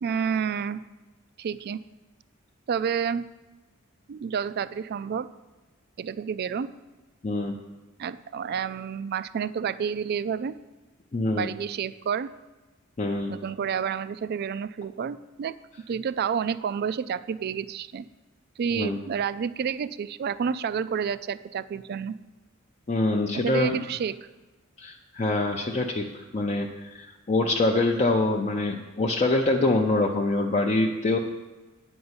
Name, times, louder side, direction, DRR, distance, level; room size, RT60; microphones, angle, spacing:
voice 1, 0.0-0.8 1.4-1.8 2.7-3.3 4.1-5.3 6.0-6.7 8.0-10.6 11.3-12.3 13.3-15.6 15.9-18.0 18.6-22.1 23.4-24.3, right 7 dB, 50° right, 15 dB, 0.3 m, -29 dB
voice 2, 7.2-7.6 11.1-11.5 13.0-13.3 18.7-19.0 22.9-23.8 24.8-31.2, left 2 dB, 30° left, 1 dB, 0.5 m, -25 dB
8.7 x 5.4 x 8.0 m, 1.2 s
head